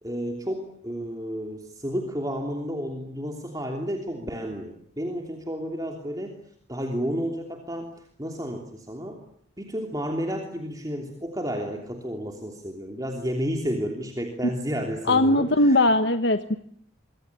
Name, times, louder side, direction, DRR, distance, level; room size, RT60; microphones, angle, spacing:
voice 1, 0.0-6.4 6.7-9.2 9.6-15.8, equal, 20° right, 2 dB, 3.1 m, -31 dB
voice 2, 15.1-16.6, left 2 dB, 65° left, 8 dB, 1.3 m, -20 dB
25.5 x 24.5 x 8.5 m, 0.63 s
head